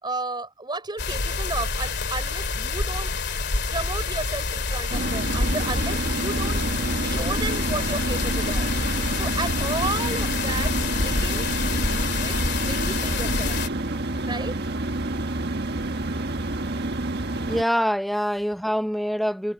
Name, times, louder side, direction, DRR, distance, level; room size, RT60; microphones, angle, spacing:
voice 1, 0.0-3.1 3.7-6.6 7.0-8.7 9.1-11.6 12.1-13.6 14.2-14.6, right 3 dB, 25° right, 4.6 m, -33 dB
sound 1, 1.0-13.7, left 3 dB, 60° left, 2.6 m, -27 dB
sound 2, 4.9-17.6, right 2 dB, 60° right, 1.6 m, -28 dB
voice 2, 17.4-19.5, equal, ahead, 0.7 m, -25 dB
head